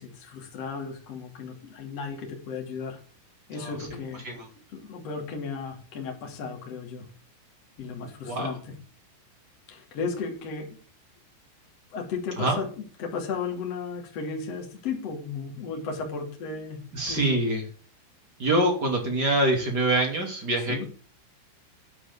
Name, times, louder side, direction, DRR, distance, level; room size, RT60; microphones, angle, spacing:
voice 1, 0.0-3.0 3.5-4.2 4.7-7.0 7.8-8.7 9.7-10.8 11.9-16.8 17.1-17.4 20.7-20.8, left 5 dB, 40° left, 1 dB, 3.1 m, -35 dB
voice 2, 16.9-17.6 18.4-20.8, right 1 dB, 30° right, 1 dB, 2.2 m, -25 dB
12.0 x 4.9 x 8.1 m, 0.41 s
omnidirectional pair, 5.9 m